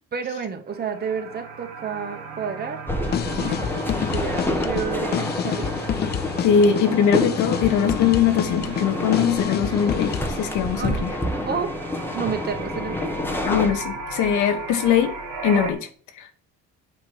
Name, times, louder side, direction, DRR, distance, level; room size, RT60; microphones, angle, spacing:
voice 1, 0.1-2.8 3.3-3.6 4.1-5.8 10.8-11.0 11.5-11.8 12.1-13.2, right 6 dB, 30° right, 6 dB, 1.2 m, -30 dB
sound 1, 0.7-15.7, right 3 dB, 85° right, 1.9 m, -36 dB
sound 2, 2.9-13.7, left 1 dB, 5° left, 1.0 m, -29 dB
sound 3, 3.0-10.5, left 10 dB, 35° left, 0.4 m, -28 dB
voice 2, 6.4-11.1 13.4-15.1 15.4-15.9 16.2-16.3, left 8 dB, 80° left, 8 dB, 1.3 m, -21 dB
8.2 x 3.1 x 6.3 m, 0.43 s
cardioid pair, 130°, 30 cm